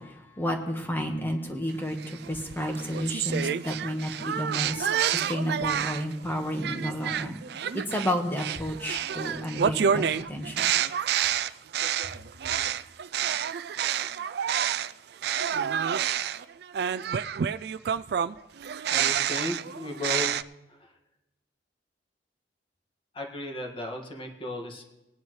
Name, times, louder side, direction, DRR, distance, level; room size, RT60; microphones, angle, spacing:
voice 1, 0.0-7.4 7.7-10.7, equal, 10° left, 3 dB, 1.4 m, -31 dB
sound 1, 2.0-6.1 6.6-14.9 15.2-20.4, right 8 dB, 65° right, 0.3 m, -29 dB
voice 2, 18.9-20.3 20.7-20.9 23.1-24.8, left 2 dB, 30° left, 1 dB, 1.8 m, -35 dB
19.5 x 10.0 x 3.2 m, 0.95 s
head